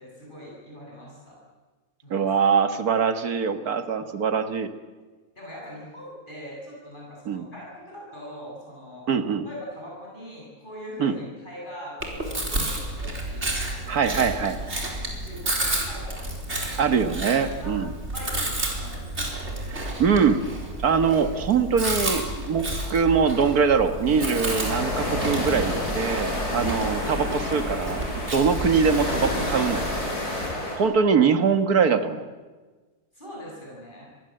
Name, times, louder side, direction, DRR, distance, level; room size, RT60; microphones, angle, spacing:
voice 1, 0.0-1.4 2.0-2.3 5.3-9.0 9.4-14.2 14.6-14.9 15.2-16.9 17.4-17.8 18.1-19.9 33.1-34.1, equal, 30° left, -4 dB, 8.3 m, -42 dB
voice 2, 2.1-4.7 7.3-7.5 9.1-9.5 11.0-11.1 13.9-14.6 16.8-17.9 19.7-20.4 20.8-28.0 28.3-30.1 30.8-32.3, right 6 dB, 70° right, 8 dB, 2.1 m, -23 dB
Chewing mastication, 12.0-30.0, right 1 dB, 45° right, 5.0 m, -31 dB
sound 1, 24.1-30.8, left 1 dB, 70° left, 7.6 m, -29 dB
28.0 x 23.0 x 7.9 m, 1.3 s
omnidirectional pair, 1.7 m